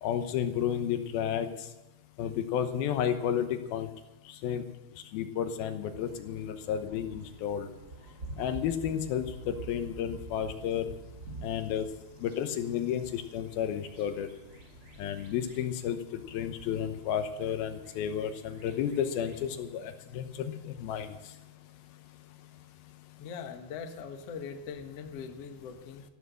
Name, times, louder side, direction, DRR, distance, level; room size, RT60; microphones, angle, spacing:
voice 1, 0.0-1.7 2.2-3.9 4.3-4.6 5.1-7.7 8.4-10.9 11.4-11.9 12.2-14.3 15.0-21.1, left 9 dB, 80° left, 8 dB, 2.8 m, -32 dB
sound 1, 5.9-19.6, right 2 dB, 30° right, 2.4 m, -48 dB
voice 2, 23.2-26.0, left 6 dB, 60° left, 5 dB, 1.8 m, -41 dB
14.0 x 13.5 x 6.3 m, 0.92 s
omnidirectional pair, 4.4 m